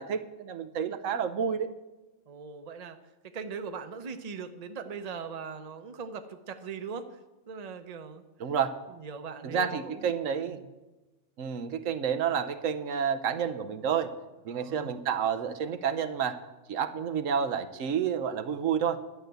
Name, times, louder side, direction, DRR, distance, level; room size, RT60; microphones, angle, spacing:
voice 1, 0.0-1.7 8.4-8.7 9.4-10.6 11.4-14.1 14.4-16.4 16.7-19.0, right 7 dB, 80° right, 8 dB, 1.1 m, -30 dB
voice 2, 2.3-3.0 3.3-7.2 7.5-8.2 8.9-10.1 10.5-10.7 14.5-15.0 17.0-17.3, right 5 dB, 35° right, 8 dB, 0.8 m, -40 dB
11.5 x 6.6 x 9.1 m, 1.1 s
omnidirectional pair, 1.4 m